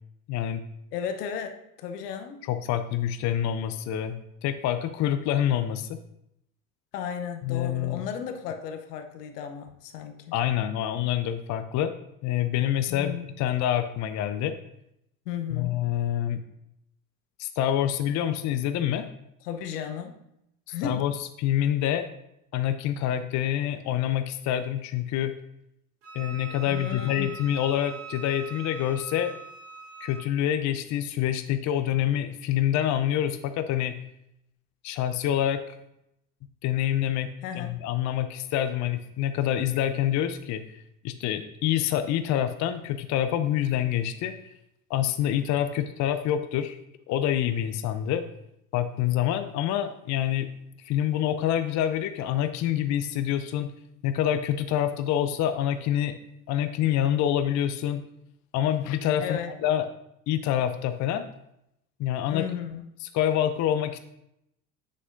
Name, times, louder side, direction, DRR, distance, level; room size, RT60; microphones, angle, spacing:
voice 1, 0.3-0.6 2.5-5.9 7.4-8.0 10.3-11.9 12.2-14.5 15.5-16.4 17.4-19.0 20.8-22.1 22.5-25.3 26.1-29.3 30.0-33.9 34.8-35.6 36.6-37.3 37.5-40.6 41.0-44.3 44.9-46.8 47.1-48.2 48.7-50.5 50.8-53.7 54.0-56.1 56.5-58.0 58.5-59.9 60.3-61.3 62.0-62.4 63.1-64.0, left 11 dB, 40° left, 9 dB, 0.5 m, -26 dB
voice 2, 0.9-2.4 6.9-10.3 12.9-13.3 15.3-15.8 19.4-20.2 20.7-21.1 26.7-27.4 37.4-37.8 59.2-59.5 62.3-63.0, left 8 dB, 75° left, 7 dB, 0.9 m, -34 dB
Wind instrument woodwind instrument, 26.0-30.3, right 6 dB, 60° right, 2.4 m, -42 dB
7.6 x 6.4 x 2.5 m, 0.79 s
hypercardioid pair, 80°, 48 cm